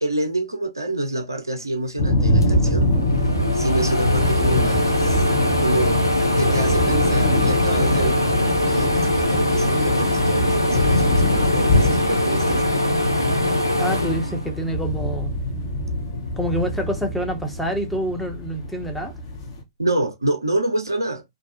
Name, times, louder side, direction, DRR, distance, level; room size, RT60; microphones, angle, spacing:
voice 1, 0.0-2.9 3.5-5.2 5.6-8.2 8.5-12.6 19.8-21.2, right 1 dB, 85° right, 0.5 m, -26 dB
sound 1, 2.0-19.6, left 1 dB, 50° left, 0.7 m, -24 dB
sound 2, 2.1-2.2 2.4-15.0 15.4-16.6, left 1 dB, 85° left, 0.5 m, -22 dB
voice 2, 13.8-15.3 16.4-19.1, right 1 dB, ahead, 0.5 m, -27 dB
2.5 x 2.0 x 2.4 m
figure-of-eight pair, 110°, 2 cm